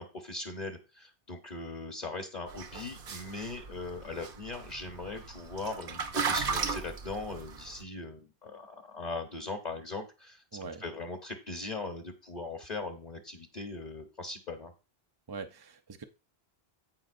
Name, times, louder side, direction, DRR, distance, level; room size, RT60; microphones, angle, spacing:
voice 1, 0.0-14.7, left 3 dB, 45° left, 1.1 m, -40 dB
sound 1, 2.5-7.8, right 5 dB, 60° right, 1.0 m, -36 dB
voice 2, 10.5-10.8 15.3-16.0, right 5 dB, 35° right, 0.4 m, -42 dB
15.0 x 5.0 x 2.6 m
omnidirectional pair, 1.1 m